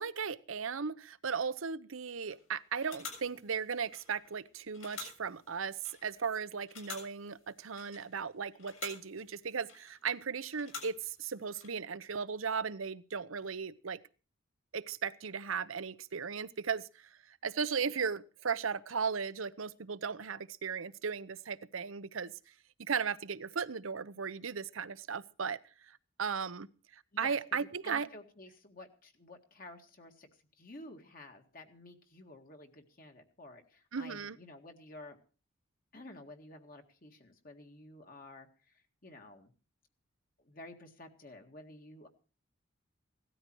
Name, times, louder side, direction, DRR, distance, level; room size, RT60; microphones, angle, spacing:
voice 1, 0.0-14.0 14.7-22.3 22.8-25.6 25.9-26.7 26.9-28.1 33.9-34.4, right 6 dB, 80° right, 16 dB, 0.8 m, -36 dB
sound 1, 2.2-2.5 2.8-4.4 4.7-6.3 6.7-8.3 8.5-10.1 10.5-11.7, left 5 dB, 75° left, 7.1 m, -49 dB
voice 2, 27.1-30.3 30.6-35.2 35.9-39.5 40.4-42.1, left 2 dB, 45° left, 4 dB, 1.9 m, -52 dB
17.0 x 13.0 x 4.6 m, 0.36 s
head